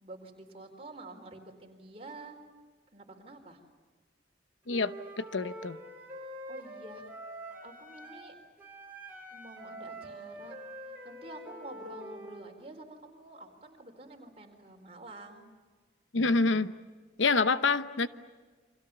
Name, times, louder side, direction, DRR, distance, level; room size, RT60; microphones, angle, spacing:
voice 1, 0.0-2.4 2.9-3.6 6.5-7.0 7.6-8.4 9.3-10.6 11.0-15.5, right 2 dB, 30° right, 2 dB, 4.2 m, -48 dB
voice 2, 4.7-5.8 16.1-16.7 17.2-18.1, left 3 dB, 85° left, 12 dB, 0.9 m, -27 dB
Wind instrument woodwind instrument, 4.7-8.3 8.6-12.5, right 1 dB, 10° right, 6.4 m, -45 dB
29.5 x 26.0 x 7.0 m, 1.5 s
head